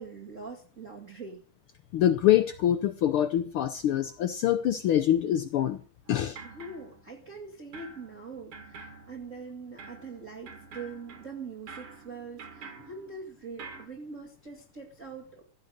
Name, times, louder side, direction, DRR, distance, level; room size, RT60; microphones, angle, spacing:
voice 1, 0.0-1.4 6.4-15.4, right 4 dB, 30° right, 0 dB, 2.2 m, -43 dB
voice 2, 1.9-5.8 6.1-6.4, left 11 dB, 85° left, 10 dB, 1.2 m, -25 dB
sound 1, 6.1-7.4 7.7-13.9, right 4 dB, 55° right, 2.8 m, -48 dB
16.0 x 8.3 x 6.5 m, 0.42 s
omnidirectional pair, 3.3 m